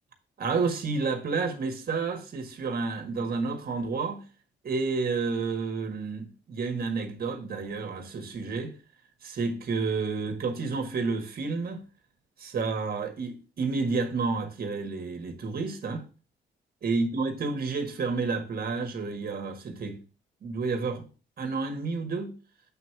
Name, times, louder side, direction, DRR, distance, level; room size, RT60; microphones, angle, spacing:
voice 1, 0.4-4.2 4.6-8.7 9.2-11.8 12.4-16.0 16.8-20.0 20.4-21.1 21.4-22.3, right 4 dB, 50° right, 1.6 m, -30 dB
7.7 x 3.1 x 5.8 m
cardioid pair, 90°, 20 cm